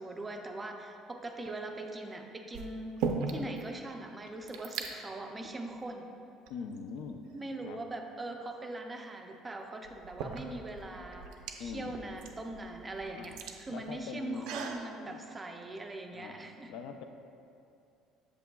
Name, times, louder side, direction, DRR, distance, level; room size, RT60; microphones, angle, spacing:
voice 1, 0.0-2.9 3.3-6.1 7.3-16.7, right 2 dB, 15° right, 3 dB, 0.4 m, -41 dB
sound 1, 1.3-1.7 2.5-3.6 3.9-4.0 4.2-4.9 5.7-5.9 6.5-7.4 9.1-9.2 9.8-14.9, right 5 dB, 75° right, 0.5 m, -39 dB
voice 2, 6.5-7.2 7.6-7.8 11.6-12.0 13.1-13.3 13.7-14.5 15.1-15.2 16.1-16.3 16.7-17.0, left 6 dB, 65° left, 6 dB, 0.4 m, -42 dB
8.2 x 7.2 x 2.3 m, 2.6 s
cardioid pair, 165°, 0 cm